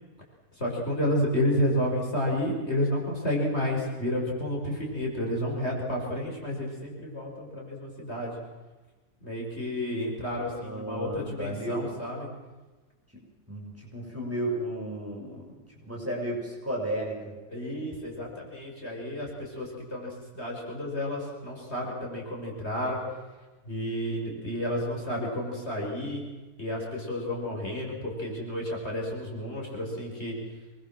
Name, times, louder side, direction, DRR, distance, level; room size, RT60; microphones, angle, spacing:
voice 1, 0.6-8.3 9.2-12.3 17.5-23.0 23.7-26.2 26.6-30.4, left 1 dB, 40° left, -2 dB, 6.0 m, -31 dB
voice 2, 10.6-11.9 13.5-15.5 15.8-17.3, right 1 dB, 10° right, -3 dB, 7.3 m, -33 dB
26.0 x 21.5 x 7.6 m, 1.2 s
omnidirectional pair, 1.6 m